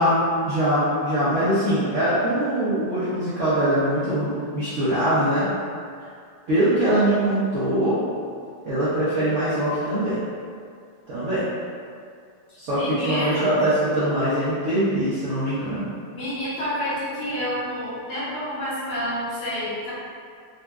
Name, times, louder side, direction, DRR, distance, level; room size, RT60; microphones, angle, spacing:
voice 1, 0.0-5.5 6.5-8.0 8.6-10.2 11.1-11.4 12.6-15.9, right 1 dB, 60° right, -13 dB, 0.8 m, -22 dB
voice 2, 12.7-13.5 16.1-19.9, equal, 60° left, -11 dB, 1.4 m, -28 dB
3.9 x 2.3 x 2.3 m, 2.3 s
omnidirectional pair, 2.0 m